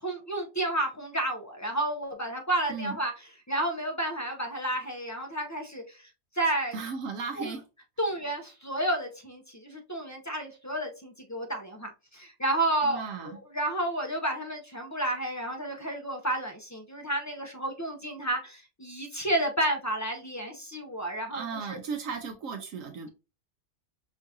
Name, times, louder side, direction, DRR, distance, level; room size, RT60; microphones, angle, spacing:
voice 1, 0.0-3.1 3.5-6.1 6.3-6.7 7.4-7.5 8.0-21.8, right 1 dB, 25° left, 0.4 m, -31 dB
voice 2, 6.7-7.6 12.8-13.4 21.3-23.1, right 5 dB, 75° right, 1.0 m, -36 dB
5.5 x 2.4 x 2.8 m
omnidirectional pair, 1.4 m